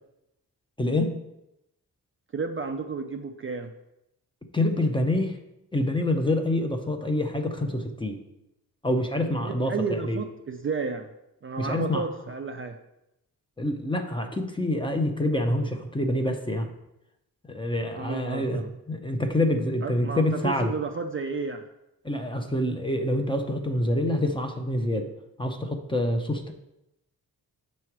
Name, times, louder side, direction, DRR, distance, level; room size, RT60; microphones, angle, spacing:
voice 1, 0.8-1.1 4.5-5.4 5.7-8.2 8.8-10.2 11.6-12.0 13.6-16.7 17.5-18.6 18.9-20.7 22.0-25.1 25.4-26.5, left 1 dB, 15° left, 4 dB, 0.6 m, -26 dB
voice 2, 2.3-3.7 9.2-11.1 11.4-12.8 18.0-18.7 19.8-21.6, right 4 dB, 35° right, 5 dB, 0.4 m, -32 dB
6.8 x 3.2 x 5.8 m, 0.87 s
wide cardioid pair, 125°, 39 cm